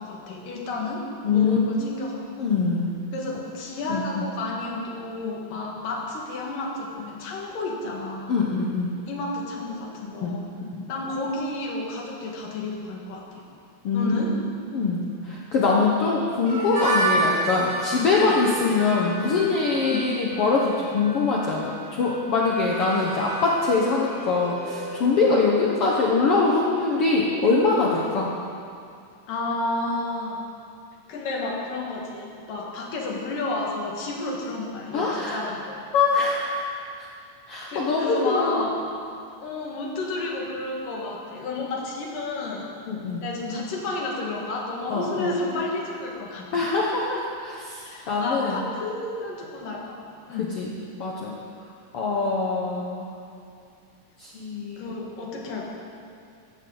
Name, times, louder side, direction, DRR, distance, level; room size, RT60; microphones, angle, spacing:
voice 1, 0.0-2.2 3.1-8.4 9.1-10.5 10.9-13.4 13.9-14.3 18.2-18.3 19.8-20.1 25.2-25.4 29.3-30.4 31.1-35.6 37.7-38.8 39.4-42.7 43.2-46.7 47.8-50.0 50.3-50.5 54.8-55.7, left 2 dB, 80° left, -2 dB, 3.5 m, -31 dB
voice 2, 1.2-1.9 2.4-2.9 3.9-4.3 8.3-9.0 10.2-10.4 10.7-10.8 13.8-14.1 14.7-28.3 34.9-35.4 35.9-37.1 37.5-38.6 42.9-43.3 44.9-45.4 46.5-48.6 50.4-50.7 51.0-51.4 51.9-53.1 54.2-54.8, left 4 dB, 60° left, -3 dB, 1.7 m, -23 dB
Harmonica, 16.5-26.1, right 2 dB, 40° right, 3.9 m, -31 dB
15.0 x 14.5 x 4.0 m, 2.4 s
omnidirectional pair, 3.8 m